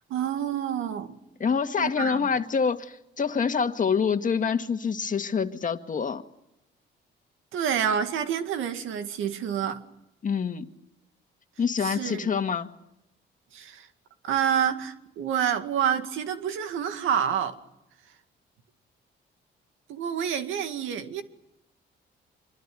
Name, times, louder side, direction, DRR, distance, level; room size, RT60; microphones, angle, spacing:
voice 1, 0.1-1.2 1.8-2.3 7.5-9.8 11.8-12.3 13.5-13.9 14.2-17.6 19.9-21.2, right 8 dB, 85° right, 2.2 m, -28 dB
voice 2, 1.4-6.2 10.2-10.7 11.6-12.7, left 6 dB, 40° left, 1.9 m, -26 dB
25.5 x 23.0 x 9.5 m
cardioid pair, 90°, 20 cm